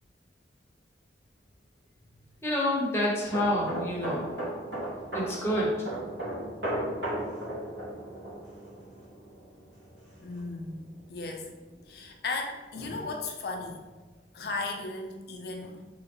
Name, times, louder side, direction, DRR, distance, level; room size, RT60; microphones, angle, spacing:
voice 1, 2.4-4.3 5.1-5.7, left 1 dB, 15° left, -5 dB, 0.8 m, -28 dB
sound 1, 3.2-10.7 11.0-11.3, right 1 dB, 75° right, 1.3 m, -36 dB
voice 2, 10.2-11.5 11.9-13.9 14.3-15.8, left 3 dB, 60° left, 2 dB, 0.5 m, -36 dB
3.6 x 3.1 x 2.9 m, 1.2 s
head